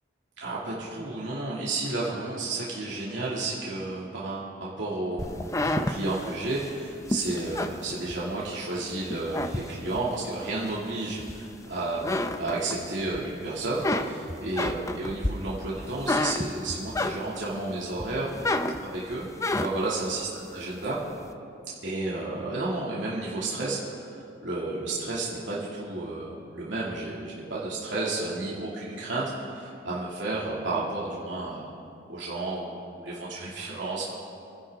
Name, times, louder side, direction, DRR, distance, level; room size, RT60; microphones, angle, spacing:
voice 1, 0.4-18.3 18.8-19.3 19.6-20.3 20.5-21.0 21.8-31.6 32.1-34.1, right 2 dB, 80° right, -6 dB, 2.6 m, -32 dB
sound 1, 5.2-8.6 9.0-10.1 10.6-11.6 11.9-13.2 13.5-17.6 18.0-20.0, left 1 dB, 15° left, 0.6 m, -30 dB
28.0 x 11.0 x 3.8 m, 2.5 s
head